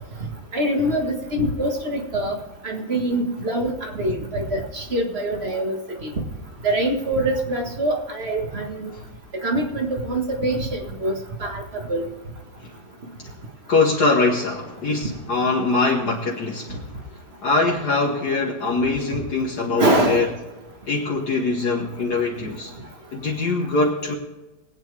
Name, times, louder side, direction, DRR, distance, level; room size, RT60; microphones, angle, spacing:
voice 1, 0.5-2.4 2.6-6.1 6.6-8.9 9.3-12.1 19.8-20.3, right 1 dB, 35° right, 2 dB, 1.8 m, -24 dB
voice 2, 13.7-16.8 17.4-20.3 20.9-22.7 23.1-24.2, left 3 dB, 60° left, -1 dB, 1.8 m, -22 dB
22.0 x 8.9 x 3.4 m, 1.1 s
omnidirectional pair, 2.1 m